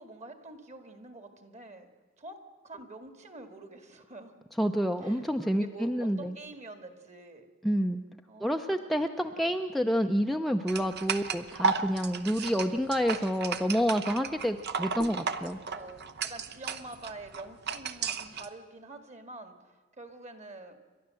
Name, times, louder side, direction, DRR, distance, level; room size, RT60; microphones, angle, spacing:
voice 1, 0.0-1.9 2.2-2.4 2.6-4.3 5.0-5.2 5.5-7.5 8.3-8.9 15.4-19.5 20.0-20.8, right 2 dB, 35° right, 8 dB, 1.9 m, -46 dB
voice 2, 4.6-6.3 7.6-8.0 8.4-15.6, equal, ahead, 4 dB, 0.6 m, -28 dB
sound 1, 10.7-18.5, right 5 dB, 55° right, 0.9 m, -34 dB
28.5 x 12.0 x 7.6 m, 1.5 s
head